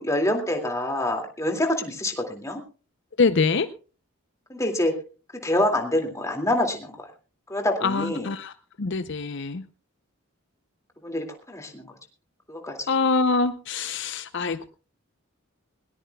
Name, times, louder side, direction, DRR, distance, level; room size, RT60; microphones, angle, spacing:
voice 1, 0.0-2.6 4.5-4.9 5.4-7.1 7.5-8.3 11.0-11.9 12.5-12.9, left 1 dB, 15° left, 3 dB, 2.4 m, -26 dB
voice 2, 3.2-3.7 7.8-8.5 8.8-9.6 12.9-14.7, left 4 dB, 60° left, 11 dB, 0.6 m, -24 dB
20.5 x 18.5 x 2.3 m, 0.36 s
head